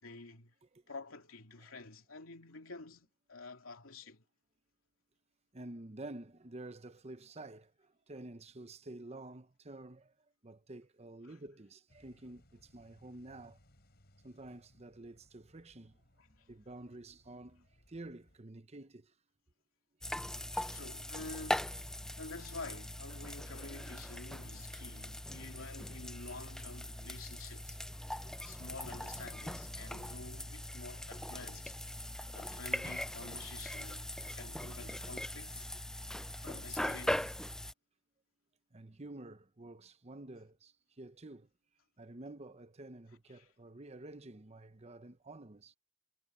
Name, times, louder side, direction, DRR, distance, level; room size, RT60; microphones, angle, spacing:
voice 1, 0.0-0.5 0.9-4.2 11.2-11.4 16.2-16.3 20.7-21.7 22.2-27.8 28.4-31.8 32.3-35.7 36.4-37.4 43.3-43.5, left 3 dB, 80° left, 2.8 m, -49 dB
voice 2, 5.5-10.1 10.4-13.6 14.2-16.0 16.3-19.1 20.2-20.3 24.7-24.9 28.2-28.6 34.3-34.4 38.7-41.5 42.0-45.8, right 2 dB, 30° right, 0.9 m, -50 dB
sound 1, 11.9-18.4, left 1 dB, 50° left, 6.1 m, -67 dB
sound 2, 20.0-37.7, left 1 dB, 5° left, 0.4 m, -41 dB
head